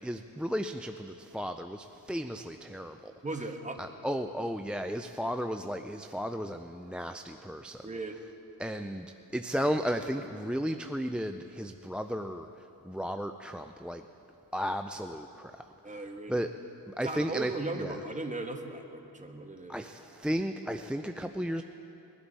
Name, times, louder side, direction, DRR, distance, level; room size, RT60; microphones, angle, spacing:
voice 1, 0.0-3.1 3.8-7.8 8.6-14.0 14.5-15.9 16.3-16.5 16.9-17.5 17.8-17.9 19.7-21.6, equal, 5° right, 7 dB, 0.3 m, -34 dB
voice 2, 3.2-3.8 7.8-8.1 15.8-16.4 17.0-19.8, right 2 dB, 20° right, 4 dB, 1.2 m, -37 dB
21.0 x 11.5 x 4.0 m, 2.9 s
cardioid pair, 80°, 39 cm